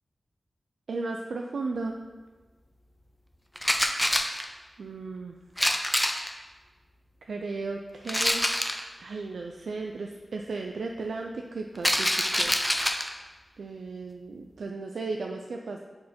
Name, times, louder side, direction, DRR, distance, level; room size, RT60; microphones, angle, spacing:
voice 1, 0.9-1.9 4.8-5.3 7.2-8.5 9.0-12.1 12.4-12.5 13.6-15.8, right 3 dB, 85° right, 2 dB, 0.4 m, -35 dB
sound 1, 3.6-4.4 5.6-6.3 8.1-8.8 11.7-13.1, equal, 10° left, 0.6 m, -26 dB
6.7 x 4.5 x 5.1 m, 1.4 s
wide cardioid pair, 80°, 0 cm